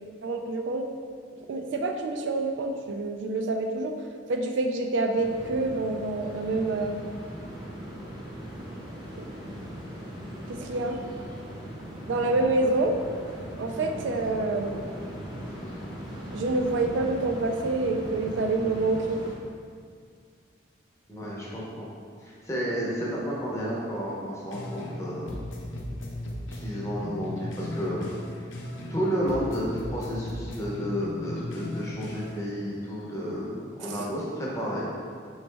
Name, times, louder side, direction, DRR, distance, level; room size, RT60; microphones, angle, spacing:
voice 1, 0.2-0.9 1.5-4.0 4.3-7.0 9.2-9.3 10.5-11.0 12.1-12.9 13.6-14.8 16.3-19.2, right 2 dB, 75° right, 4 dB, 0.3 m, -27 dB
sound 1, 5.2-19.3, equal, 20° right, 0.6 m, -39 dB
voice 2, 21.1-21.9 22.2-25.4 26.5-28.1 28.9-34.9, equal, 15° left, -5 dB, 0.7 m, -31 dB
sound 2, 24.5-25.0 25.3-29.0 29.3-32.5, left 1 dB, 90° left, 0.5 m, -36 dB
4.1 x 3.2 x 3.3 m, 2.1 s
head